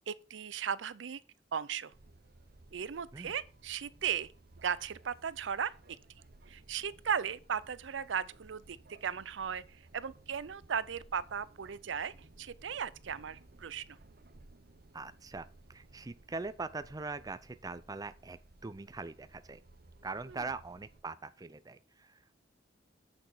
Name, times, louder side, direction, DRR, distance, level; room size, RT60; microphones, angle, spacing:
voice 1, 0.1-1.2 1.5-1.9 2.7-4.3 4.6-5.7 6.5-14.0 20.3-20.4, right 7 dB, 75° right, 0.5 m, -37 dB
sound 1, 1.9-21.0, right 2 dB, 55° right, 1.0 m, -59 dB
voice 2, 14.9-19.6 20.0-22.3, right 3 dB, 20° right, 0.5 m, -42 dB
8.1 x 6.4 x 4.5 m
head